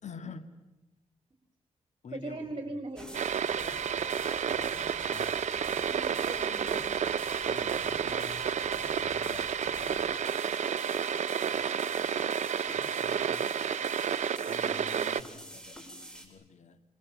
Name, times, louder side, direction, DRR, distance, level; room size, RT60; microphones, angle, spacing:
voice 1, 0.0-0.5 2.0-2.5 4.4-4.7 5.1-5.4 7.4-8.5 8.9-10.1 10.4-11.0 11.5-13.6 14.5-16.8, left 5 dB, 65° left, 11 dB, 1.9 m, -49 dB
voice 2, 2.1-3.1 5.9-6.8 14.6-15.2, right 2 dB, 40° right, 6 dB, 4.1 m, -40 dB
sound 1, 3.0-16.3, equal, 5° left, 7.8 m, -46 dB
sound 2, 3.1-15.2, right 8 dB, 65° right, 0.9 m, -31 dB
28.5 x 27.0 x 7.5 m, 1.1 s
cardioid pair, 70°, 13 cm